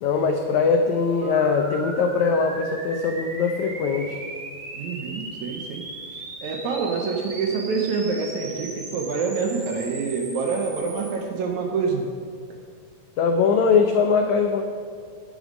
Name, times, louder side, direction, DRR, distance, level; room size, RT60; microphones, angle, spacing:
voice 1, 0.0-4.2 13.2-14.6, left 5 dB, 90° left, 4 dB, 1.6 m, -21 dB
sound 1, 1.2-11.1, right 2 dB, 50° right, 2.4 m, -38 dB
voice 2, 4.7-5.8 6.4-12.1, right 5 dB, 70° right, 2 dB, 1.9 m, -26 dB
10.5 x 9.9 x 5.1 m, 2.1 s
omnidirectional pair, 4.2 m